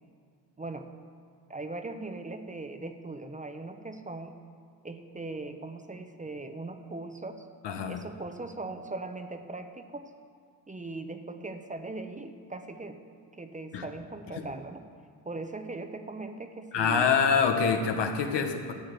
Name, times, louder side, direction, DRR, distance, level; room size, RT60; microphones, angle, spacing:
voice 1, 0.6-0.9 1.5-4.4 4.8-7.5 7.9-10.1 10.7-13.0 13.3-14.9 15.2-17.2, right 2 dB, 20° right, 7 dB, 0.8 m, -39 dB
voice 2, 7.6-8.0 13.7-13.8 14.4-14.5 16.7-18.7, left 6 dB, 80° left, 5 dB, 1.3 m, -25 dB
13.0 x 6.3 x 8.2 m, 2.1 s
cardioid pair, 95°, 42 cm